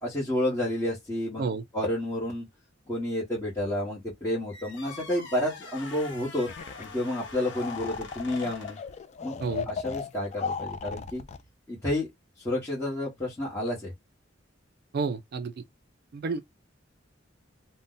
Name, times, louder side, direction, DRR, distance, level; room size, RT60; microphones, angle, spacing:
voice 1, 0.0-1.4 1.7-2.5 2.9-6.5 6.8-8.8 9.2-9.4 9.6-11.2 11.7-12.1 12.4-13.9, left 1 dB, 15° left, 1.0 m, -30 dB
sound 1, 4.5-8.9, left 4 dB, 70° left, 0.9 m, -45 dB
sound 2, 6.5-6.9 7.1-11.4, left 6 dB, 35° left, 0.3 m, -36 dB
voice 2, 14.9-15.5 16.1-16.4, right 4 dB, 55° right, 0.4 m, -30 dB
2.6 x 2.1 x 3.7 m
head